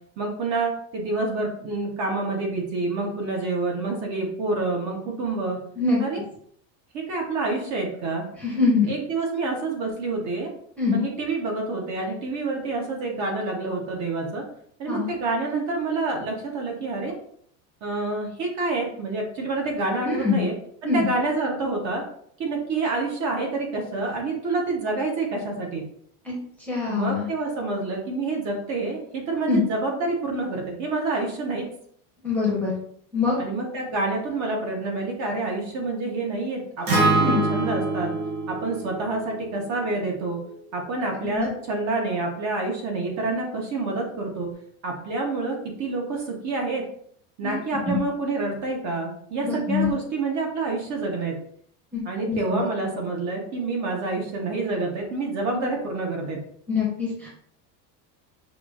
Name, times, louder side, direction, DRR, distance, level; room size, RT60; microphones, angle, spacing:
voice 1, 0.2-5.6 6.0-6.2 6.9-8.3 8.9-10.5 10.9-14.4 14.8-17.1 17.8-20.5 20.8-22.0 22.4-25.8 26.9-31.6 33.4-38.1 38.5-40.4 40.7-44.5 44.8-46.8 47.4-51.4 52.0-56.4, right 3 dB, 40° right, 0 dB, 0.9 m, -28 dB
voice 2, 8.4-8.9 10.8-11.0 14.9-15.1 20.0-20.4 20.8-21.1 26.2-26.4 26.7-27.3 29.5-29.6 32.2-32.7 33.1-33.4 37.1-37.4 41.2-41.5 47.4-47.6 47.9-48.0 49.4-49.9 51.9-52.0 52.3-52.7 56.7-57.3, left 4 dB, 5° left, -6 dB, 0.8 m, -24 dB
Acoustic guitar, 36.9-41.1, right 3 dB, 75° right, 1.6 m, -26 dB
5.8 x 2.4 x 2.4 m, 0.64 s
cardioid pair, 160°, 44 cm